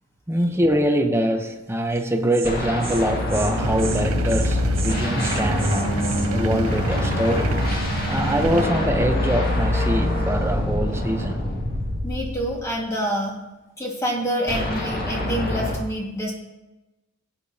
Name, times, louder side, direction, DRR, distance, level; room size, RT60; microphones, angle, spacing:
voice 1, 0.3-7.7 8.1-11.5, equal, 10° right, 0.7 m, -24 dB
Insect, 1.9-2.1 2.3-2.5 2.8-3.0 3.3-3.5 3.8-4.0 4.3-4.5 4.7-6.3, right 6 dB, 25° right, 1.2 m, -34 dB
sound 1, 2.4-12.7 14.5-15.8, left 1 dB, 45° left, 2.0 m, -25 dB
sound 2, 3.6-8.7, right 4 dB, 85° right, 0.7 m, -29 dB
voice 2, 12.0-13.4 13.8-16.3, equal, 15° left, 1.7 m, -27 dB
15.0 x 8.7 x 2.8 m
head